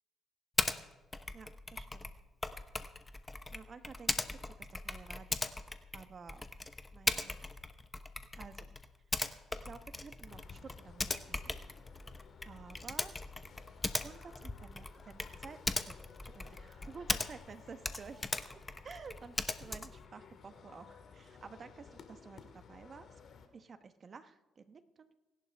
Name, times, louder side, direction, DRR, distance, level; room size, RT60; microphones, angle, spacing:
Typing, 0.6-0.8 1.1-17.5 17.8-20.0, left 2 dB, 20° left, 1.0 m, -39 dB
voice 1, 1.3-2.1 3.5-5.5 5.9-6.5 6.9-7.4 8.3-8.8 9.2-11.6 12.4-13.1 14.0-15.6 15.8-16.0 16.2-18.2 18.8-23.1 23.5-25.1, right 5 dB, 45° right, 10 dB, 1.1 m, -52 dB
sound 1, 10.3-23.5, left 6 dB, 55° left, 2.1 m, -56 dB
25.5 x 11.0 x 3.6 m, 1.1 s
cardioid pair, 85°, 0 cm